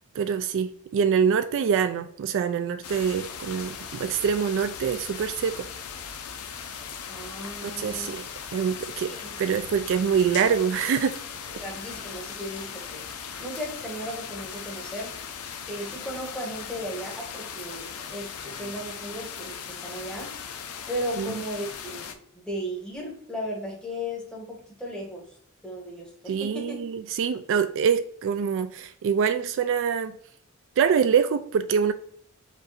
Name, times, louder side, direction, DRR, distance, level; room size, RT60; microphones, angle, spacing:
voice 1, 0.2-5.7 7.6-8.3 8.5-9.1 9.4-11.2 21.2-21.4 26.3-30.2 30.8-31.9, right 7 dB, 60° right, 0.3 m, -25 dB
sound 1, 2.8-22.1, left 7 dB, 90° left, 0.6 m, -38 dB
voice 2, 7.1-8.1 9.1-9.4 11.5-13.1 13.4-15.1 15.7-18.3 18.6-20.3 20.9-25.2 25.6-26.8, equal, 5° left, 1.4 m, -36 dB
5.1 x 2.6 x 4.0 m
head